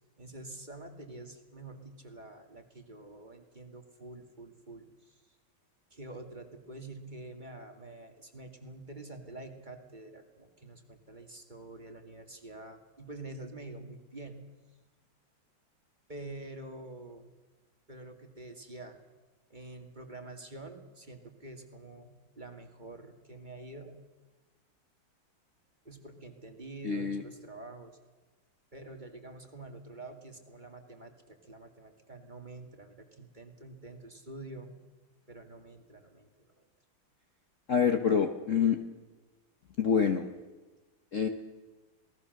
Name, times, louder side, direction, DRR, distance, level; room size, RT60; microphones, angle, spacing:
voice 1, 0.2-5.2 5.9-14.5 16.1-17.3 17.9-19.0 19.5-24.0 25.8-28.0 28.7-34.8 35.3-36.5, right 2 dB, 25° right, 4 dB, 2.1 m, -47 dB
voice 2, 26.8-27.2 37.7-38.8 39.8-40.3 41.1-41.3, left 6 dB, 45° left, 6 dB, 1.2 m, -26 dB
27.0 x 19.0 x 6.6 m, 1.2 s
omnidirectional pair, 2.2 m